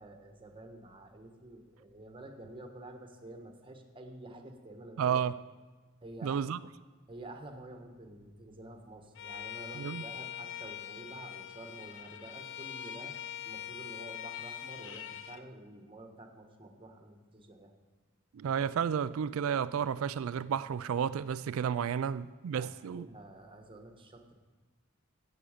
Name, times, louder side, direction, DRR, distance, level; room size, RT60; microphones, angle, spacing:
voice 1, 0.0-5.2 6.0-6.4 7.1-13.1 13.4-17.7 22.5-24.4, right 2 dB, 25° right, 1.3 m, -49 dB
voice 2, 5.0-5.3 6.2-6.6 9.8-10.0 18.3-23.1, right 8 dB, 80° right, 0.3 m, -32 dB
Bowed string instrument, 9.2-15.4, left 10 dB, 60° left, 0.7 m, -43 dB
14.5 x 8.8 x 5.0 m
head